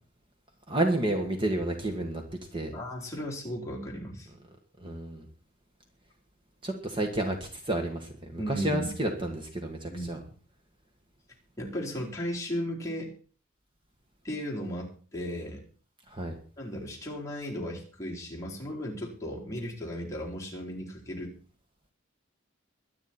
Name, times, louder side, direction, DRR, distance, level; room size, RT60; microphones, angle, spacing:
voice 1, 0.7-2.2 2.5-2.7 4.8-5.3 6.6-10.2 16.1-16.4, right 1 dB, 25° right, 3 dB, 1.8 m, -30 dB
voice 2, 2.7-4.3 8.4-8.9 9.8-10.1 11.6-13.1 14.2-15.7 16.6-21.3, equal, 15° left, -4 dB, 4.1 m, -35 dB
22.5 x 9.6 x 4.5 m, 0.40 s
head